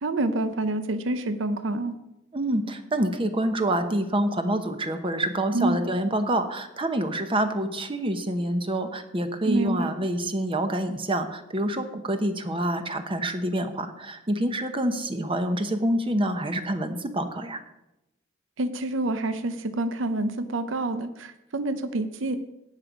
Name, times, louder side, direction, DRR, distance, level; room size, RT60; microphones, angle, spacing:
voice 1, 0.0-2.0 5.5-5.8 9.4-9.9 18.6-22.4, right 2 dB, 80° right, 11 dB, 0.7 m, -27 dB
voice 2, 2.3-17.6, right 1 dB, 25° right, 8 dB, 0.9 m, -27 dB
17.0 x 6.2 x 5.2 m, 0.91 s
head